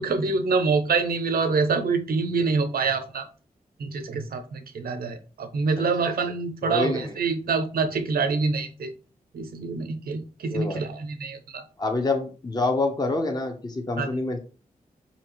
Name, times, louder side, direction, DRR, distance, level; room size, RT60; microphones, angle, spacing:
voice 1, 0.0-3.2 3.8-8.9 9.3-11.6 14.0-14.1, right 4 dB, 80° right, 8 dB, 0.7 m, -26 dB
voice 2, 6.6-7.1 10.5-10.8 11.8-14.4, left 2 dB, 25° left, 4 dB, 0.9 m, -26 dB
4.7 x 2.8 x 3.0 m, 0.36 s
cardioid pair, 45°, 15 cm